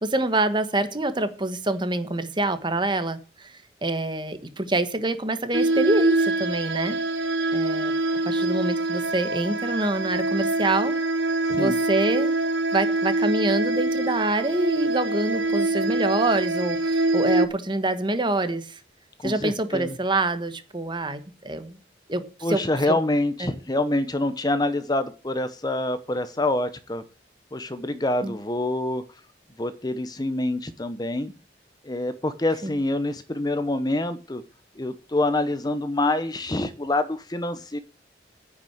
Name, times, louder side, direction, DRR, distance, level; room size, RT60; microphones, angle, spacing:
voice 1, 0.0-3.5 3.8-7.0 7.5-7.9 8.2-10.9 11.6-12.3 12.7-18.8 19.2-21.8 22.1-22.6 22.9-23.0 23.4-23.5 28.2-28.3 32.6-32.8, right 2 dB, 25° right, 1.3 m, -26 dB
sound 1, 5.5-17.5, right 2 dB, 75° right, 0.9 m, -24 dB
voice 2, 11.5-11.8 19.2-20.0 22.4-27.0 27.5-29.2 29.6-31.3 31.8-34.4 34.7-37.8, left 2 dB, 20° left, 0.8 m, -26 dB
10.5 x 6.2 x 8.7 m
head